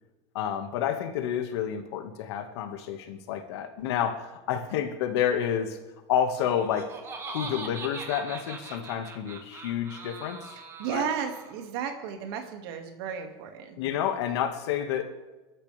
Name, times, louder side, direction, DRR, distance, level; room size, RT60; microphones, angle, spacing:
voice 1, 0.3-5.8 6.1-6.9 7.3-10.6 10.9-11.1 13.8-15.0, left 9 dB, 70° left, 6 dB, 1.9 m, -29 dB
Laughter, 6.4-11.6, right 4 dB, 20° right, 1.6 m, -41 dB
voice 2, 10.8-13.8, right 7 dB, 60° right, 4 dB, 2.3 m, -33 dB
24.5 x 13.0 x 3.5 m, 1.1 s
supercardioid pair, 175°, 14 cm